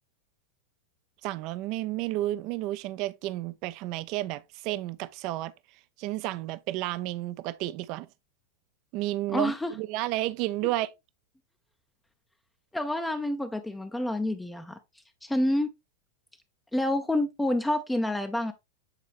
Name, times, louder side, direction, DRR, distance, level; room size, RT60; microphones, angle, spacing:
voice 1, 1.2-5.5 6.0-8.1 8.9-10.9, right 16 dB, 40° right, 0.4 m, -31 dB
voice 2, 9.3-9.7 12.7-14.8 15.2-15.7 16.7-18.5, left 1 dB, 5° left, 0.5 m, -28 dB
8.1 x 4.1 x 3.1 m
figure-of-eight pair, 90°, 0 cm